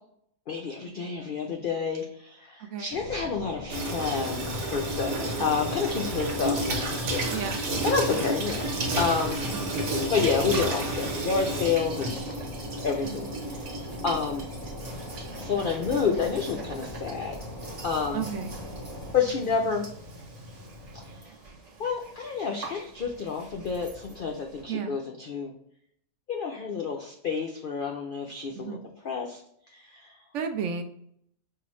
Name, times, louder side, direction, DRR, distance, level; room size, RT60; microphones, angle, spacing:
voice 1, 0.5-7.2 7.8-9.4 10.1-12.2 12.8-13.8 14.0-14.5 15.1-17.4 17.8-18.3 19.1-19.9 20.9-21.3 21.8-25.5 26.3-28.8 29.0-29.4 29.7-30.2, left 5 dB, 80° left, 1 dB, 0.4 m, -29 dB
voice 2, 2.6-2.9 5.4-5.6 7.3-7.7 9.4-9.7 13.0-13.2 18.1-18.5 24.7-25.0 28.6-28.9 30.3-30.8, right 6 dB, 65° right, 7 dB, 0.8 m, -33 dB
sound 1, 2.9-19.1, equal, 35° left, 0.6 m, -41 dB
Water tap faucet / Sink (filling or washing), 3.7-21.2, right 1 dB, 85° right, 1.5 m, -33 dB
sound 2, 9.3-24.6, right 3 dB, 40° right, 0.7 m, -48 dB
5.5 x 2.5 x 3.0 m, 0.70 s
omnidirectional pair, 1.5 m